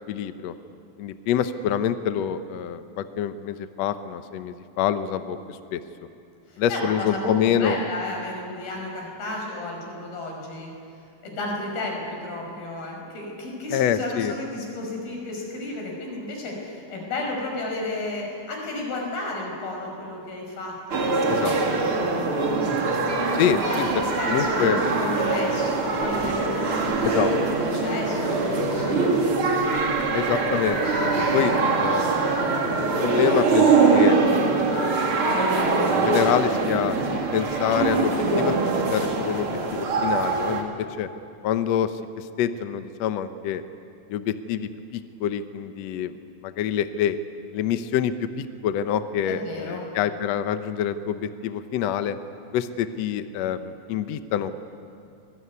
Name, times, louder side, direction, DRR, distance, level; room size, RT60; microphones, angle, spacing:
voice 1, 0.1-0.5 1.0-5.8 6.6-7.8 13.7-14.3 21.3-21.6 23.3-24.8 27.0-27.3 30.1-32.2 33.0-34.2 34.7-35.0 35.9-38.5 38.9-41.1 41.4-43.6 44.1-46.2 46.4-47.2 47.5-52.1 52.5-54.6, left 9 dB, 70° left, 10 dB, 1.6 m, -26 dB
voice 2, 6.5-10.7 11.2-22.3 23.4-27.3 27.7-29.4 49.3-49.9, left 2 dB, 85° left, 0 dB, 7.5 m, -32 dB
sound 1, 20.9-40.6, right 3 dB, 40° right, 2.7 m, -23 dB
26.0 x 20.0 x 9.6 m, 2.6 s
omnidirectional pair, 4.2 m